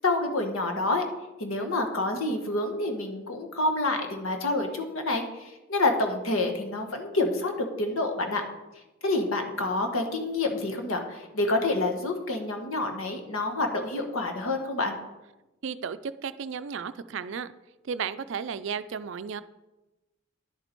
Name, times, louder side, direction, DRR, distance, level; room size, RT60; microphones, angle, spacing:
voice 1, 0.0-1.0 1.4-8.4 9.0-15.0, left 2 dB, 85° left, 5 dB, 1.3 m, -28 dB
voice 2, 15.6-17.5 17.8-19.4, right 6 dB, 65° right, 13 dB, 0.4 m, -34 dB
10.0 x 6.8 x 4.5 m, 1.0 s
head